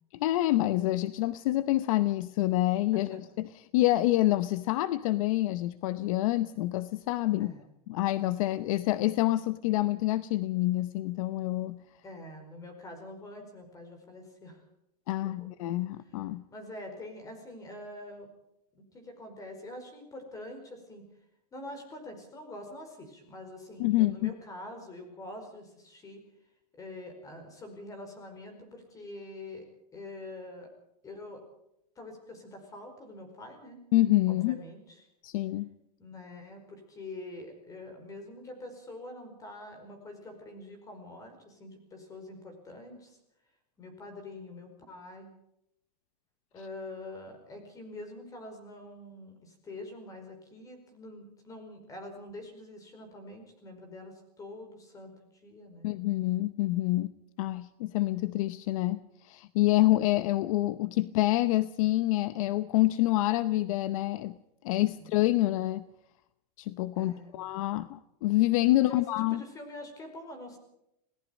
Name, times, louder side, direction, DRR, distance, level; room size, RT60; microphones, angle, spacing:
voice 1, 0.1-3.5 3.7-7.5 7.9-11.8 15.1-16.4 23.8-24.3 33.9-34.6 35.2-35.7 55.8-57.1 57.4-64.4 64.6-65.9 66.6-69.4, left 16 dB, 55° left, 0.8 m, -27 dB
voice 2, 12.0-14.6 15.2-15.5 16.5-18.3 18.7-21.0 21.5-26.2 26.7-29.6 29.9-30.7 31.0-31.4 31.9-33.8 34.3-35.1 36.0-43.2 43.8-45.3 46.5-55.9 64.9-65.1 66.9-67.4 68.9-70.6, left 2 dB, 15° left, 5.0 m, -45 dB
27.0 x 18.0 x 5.3 m
supercardioid pair, 160°, 21 cm